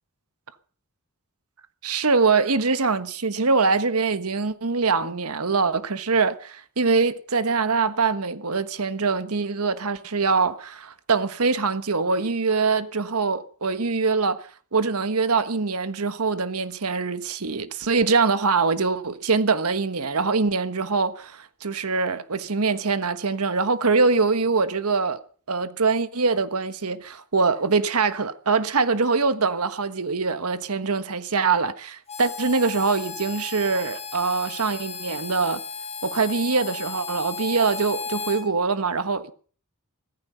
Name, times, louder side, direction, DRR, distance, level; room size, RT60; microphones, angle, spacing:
voice 1, 1.8-14.5 14.7-25.2 25.5-35.6 36.0-39.3, right 4 dB, 80° right, 1.3 m, -23 dB
Harmonica, 32.1-38.4, left 5 dB, 30° left, 4.0 m, -35 dB
16.0 x 14.5 x 5.6 m
head